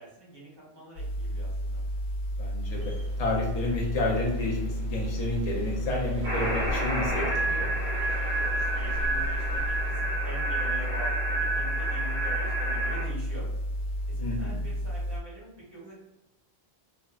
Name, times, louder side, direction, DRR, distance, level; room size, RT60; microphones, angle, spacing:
voice 1, 0.0-1.8 8.3-13.5 14.1-16.0, right 1 dB, 25° right, -5 dB, 0.9 m, -44 dB
sound 1, 1.0-15.2, equal, 90° left, 0.9 m, -32 dB
voice 2, 2.4-7.7 14.2-14.6, left 2 dB, 45° left, -1 dB, 0.6 m, -31 dB
sound 2, 2.7-9.9, equal, 55° right, 1.3 m, -43 dB
sound 3, 6.2-13.0, right 2 dB, 75° right, 1.4 m, -30 dB
3.5 x 2.0 x 2.4 m, 0.96 s
omnidirectional pair, 1.1 m